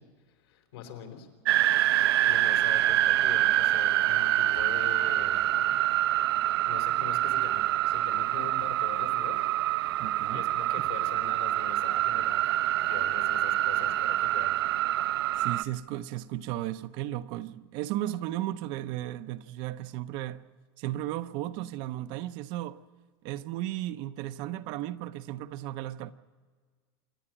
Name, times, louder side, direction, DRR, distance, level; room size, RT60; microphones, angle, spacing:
voice 1, 0.4-1.3 2.2-5.7 6.7-9.5 10.3-12.5 12.8-14.5, left 9 dB, 75° left, 4.0 m, -43 dB
sound 1, 1.4-15.6, right 14 dB, 75° right, 0.7 m, -26 dB
voice 2, 10.0-10.5 15.4-20.4 20.8-22.8 23.2-26.1, right 14 dB, 35° right, 0.6 m, -35 dB
27.0 x 11.0 x 8.9 m
supercardioid pair, 165°, 13 cm